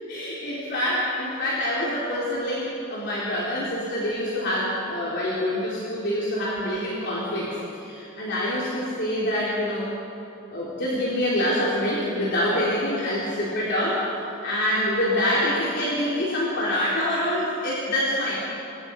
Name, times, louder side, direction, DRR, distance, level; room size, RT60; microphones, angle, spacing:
voice 1, 0.1-9.9 10.5-14.0 14.4-18.4, left 1 dB, 50° left, -7 dB, 4.0 m, -26 dB
28.0 x 24.0 x 5.4 m, 2.8 s
head